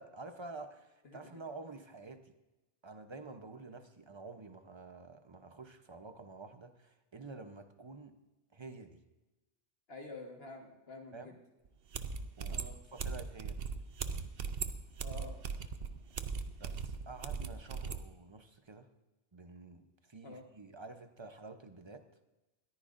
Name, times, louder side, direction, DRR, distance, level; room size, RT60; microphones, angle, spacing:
voice 1, 0.0-2.3 2.8-8.2 8.5-9.0 11.1-11.4 12.4-13.7 16.2-16.3 16.6-18.9 19.3-22.1, right 3 dB, 30° right, 7 dB, 0.9 m, -49 dB
voice 2, 9.9-11.4 12.5-12.7 15.0-15.4 20.2-20.4, left 2 dB, 75° left, 1 dB, 1.8 m, -48 dB
sound 1, 11.7-11.8 11.9-18.0, right 5 dB, 70° right, 0.9 m, -39 dB
20.0 x 14.0 x 2.6 m, 1.1 s
omnidirectional pair, 1.0 m